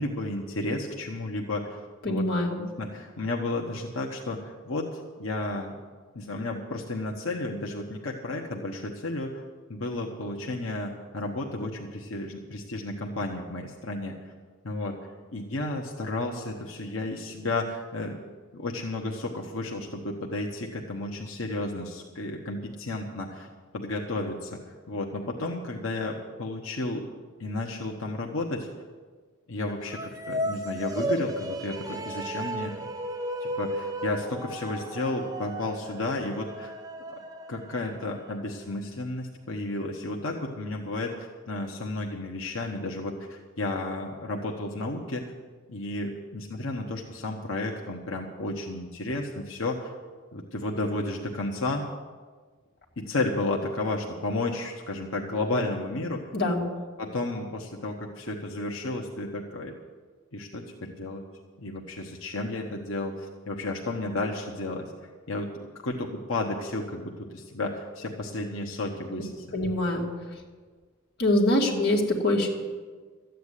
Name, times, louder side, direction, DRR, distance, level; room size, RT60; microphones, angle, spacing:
voice 1, 0.0-2.3 2.6-5.8 6.1-9.4 9.7-14.3 14.6-18.2 18.5-23.5 23.7-24.6 24.9-27.1 27.4-28.7 29.5-32.8 33.4-36.7 37.5-45.3 45.7-49.9 50.3-51.9 53.0-56.3 57.0-59.7 60.3-61.2 61.6-64.9 65.3-65.5 65.8-69.4, left 2 dB, 85° left, 0 dB, 1.2 m, -32 dB
voice 2, 2.0-2.5 56.3-56.7 69.5-70.1 71.2-72.5, left 1 dB, 55° left, -1 dB, 2.4 m, -24 dB
sound 1, 29.8-38.3, equal, 20° right, 1.1 m, -34 dB
13.5 x 9.3 x 8.3 m, 1.5 s
head